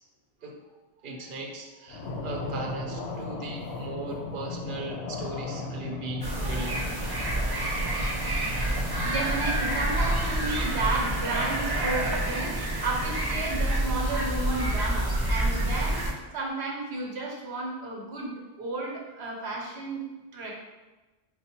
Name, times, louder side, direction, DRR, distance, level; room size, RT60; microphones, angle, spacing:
voice 1, 1.0-6.9, right 2 dB, 55° right, 0 dB, 0.8 m, -38 dB
sound 1, 1.9-12.2, left 3 dB, 80° left, 0.9 m, -38 dB
sound 2, 6.2-16.1, right 1 dB, 30° right, 0.4 m, -28 dB
voice 2, 8.6-20.0 20.3-20.5, right 2 dB, 85° right, -2 dB, 1.1 m, -33 dB
4.0 x 2.1 x 4.3 m, 1.2 s
omnidirectional pair, 1.1 m